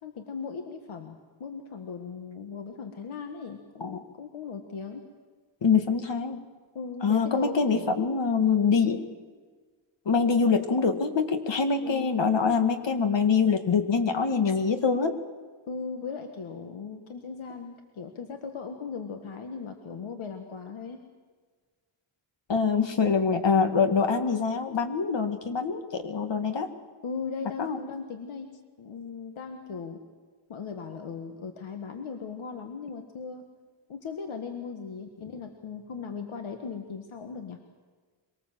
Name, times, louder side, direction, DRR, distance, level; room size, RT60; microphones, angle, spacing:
voice 1, 0.0-5.0 6.7-8.0 11.8-12.2 15.7-21.0 27.0-28.5 28.8-30.0 30.5-33.4 33.9-37.6, left 5 dB, 80° left, 5 dB, 1.7 m, -38 dB
voice 2, 5.6-6.4 7.0-9.0 10.1-15.1 22.5-26.7 27.6-27.8, left 5 dB, 60° left, 7 dB, 2.1 m, -24 dB
24.5 x 19.0 x 7.5 m, 1.5 s
wide cardioid pair, 85°, 48 cm